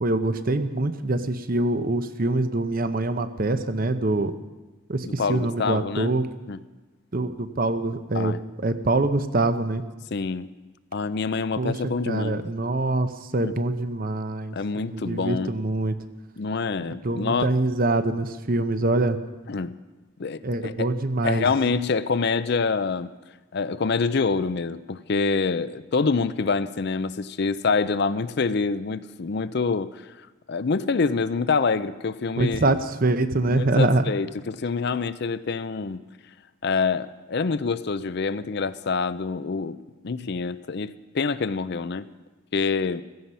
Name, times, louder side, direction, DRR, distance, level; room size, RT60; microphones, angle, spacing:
voice 1, 0.0-4.3 4.9-6.2 7.1-8.3 8.6-9.8 11.6-11.7 12.1-15.9 17.0-19.2 20.4-21.4 32.4-34.0, right 2 dB, 40° right, 10 dB, 0.8 m, -24 dB
voice 2, 5.1-6.1 6.5-6.6 8.1-8.4 10.1-10.5 10.9-12.4 13.4-13.5 14.5-15.5 16.4-17.5 19.5-19.8 20.2-20.9 21.2-23.1 23.5-30.0 30.5-32.8 33.5-36.0 36.6-39.8 40.0-42.1 42.5-43.0, left 4 dB, 50° left, 14 dB, 0.5 m, -26 dB
16.0 x 14.5 x 5.5 m, 1.2 s
head